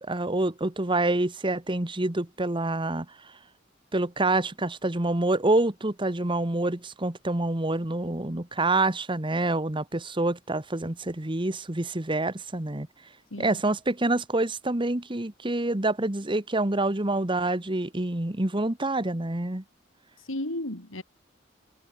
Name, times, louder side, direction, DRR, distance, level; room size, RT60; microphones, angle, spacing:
voice 1, 0.0-3.1 3.9-12.9 13.4-19.6, right 2 dB, 25° right, 1.4 m, -27 dB
voice 2, 13.3-13.6 20.2-21.0, left 1 dB, 85° left, 4.0 m, -34 dB
head